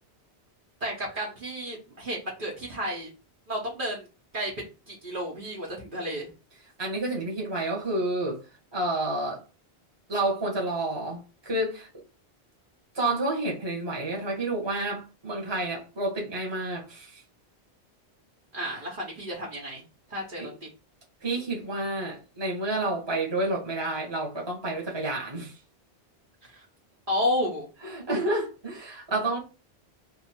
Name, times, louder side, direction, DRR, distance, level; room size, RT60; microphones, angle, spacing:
voice 1, 0.8-3.1 3.5-4.1 4.3-6.3 18.5-19.8 20.1-20.7 26.4-26.6 27.1-27.7, equal, 55° right, 1.1 m, -32 dB
voice 2, 6.8-8.4 8.7-9.4 10.1-11.9 12.9-17.2 18.6-18.8 20.4-20.5 21.2-25.6 27.8-29.4, right 2 dB, 25° right, 1.2 m, -29 dB
2.7 x 2.7 x 4.2 m
omnidirectional pair, 1.1 m